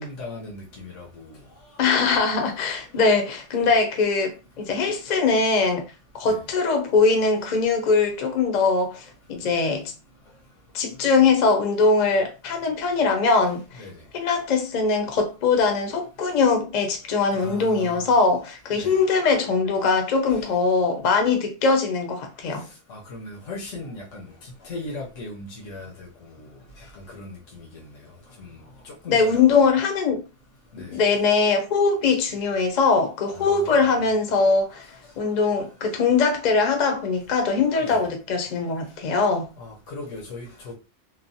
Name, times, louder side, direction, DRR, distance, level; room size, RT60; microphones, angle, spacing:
voice 1, 0.0-1.3 6.3-6.4 13.8-13.9 17.3-18.1 18.7-19.0 22.9-24.3 24.6-26.1 26.4-26.5 26.9-27.7 28.4-28.6 28.8-29.6 30.7-31.0 33.3-33.9 37.8-38.0 39.6-40.7, left 2 dB, 80° left, 1.1 m, -38 dB
voice 2, 1.8-5.8 6.1-9.9 10.7-13.8 14.1-22.7 29.1-30.2 30.9-34.9 35.2-39.5, left 4 dB, 50° left, 0.6 m, -21 dB
3.0 x 2.1 x 2.6 m
omnidirectional pair, 1.3 m